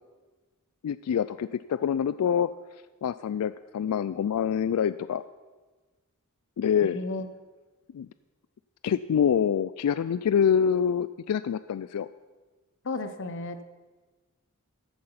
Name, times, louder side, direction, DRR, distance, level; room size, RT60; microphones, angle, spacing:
voice 1, 0.8-2.5 3.0-5.2 6.6-7.0 7.9-8.1 8.8-12.1, left 8 dB, 90° left, 15 dB, 0.3 m, -26 dB
voice 2, 6.8-7.3 12.8-13.6, left 2 dB, 60° left, 10 dB, 0.9 m, -33 dB
14.5 x 8.0 x 5.8 m, 1.3 s
head